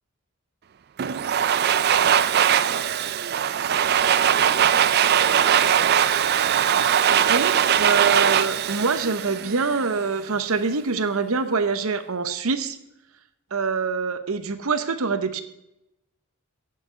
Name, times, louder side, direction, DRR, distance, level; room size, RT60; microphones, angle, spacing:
Domestic sounds home sounds, 1.0-9.9, right 9 dB, 45° right, 0.4 m, -20 dB
voice 1, 7.1-12.8 13.5-15.4, right 4 dB, 75° right, 11 dB, 0.8 m, -25 dB
8.6 x 6.5 x 6.6 m, 0.88 s
head